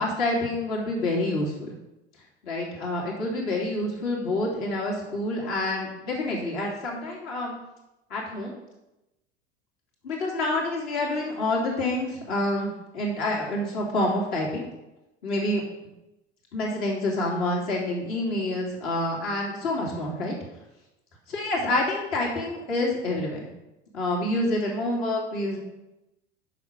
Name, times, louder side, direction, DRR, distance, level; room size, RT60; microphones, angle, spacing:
voice 1, 0.0-1.7 2.4-7.5 8.1-8.5 10.0-14.6 15.2-15.6 16.5-20.3 21.3-23.4 23.9-25.6, left 1 dB, 65° left, -3 dB, 2.7 m, -27 dB
6.8 x 5.9 x 5.1 m, 0.94 s
figure-of-eight pair, 75°, 34 cm